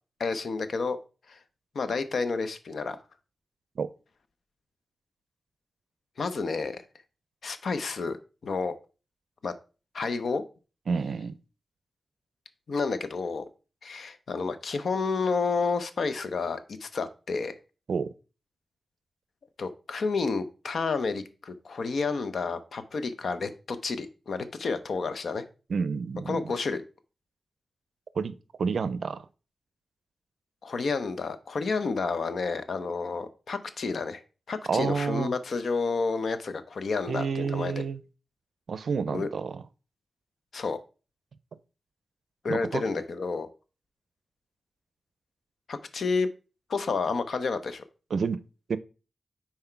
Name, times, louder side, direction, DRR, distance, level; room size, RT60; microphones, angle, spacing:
voice 1, 0.2-1.0 1.3-1.4 1.7-3.0 6.2-6.8 7.4-8.2 8.4-8.7 9.4-9.5 9.9-10.4 12.7-13.4 13.8-17.5 19.6-25.4 26.3-26.8 30.6-34.2 34.5-37.8 39.1-39.3 40.5-40.8 42.4-43.5 45.7-46.3 46.7-47.8, left 4 dB, 70° left, 0.6 m, -30 dB
voice 2, 10.9-11.4 17.9-18.1 25.7-26.4 28.2-29.3 34.7-35.3 37.1-38.0 38.7-39.6 42.5-42.8 48.1-48.4 48.7-48.8, right 5 dB, 75° right, 0.4 m, -29 dB
5.8 x 4.3 x 4.4 m
wide cardioid pair, 115°, 0 cm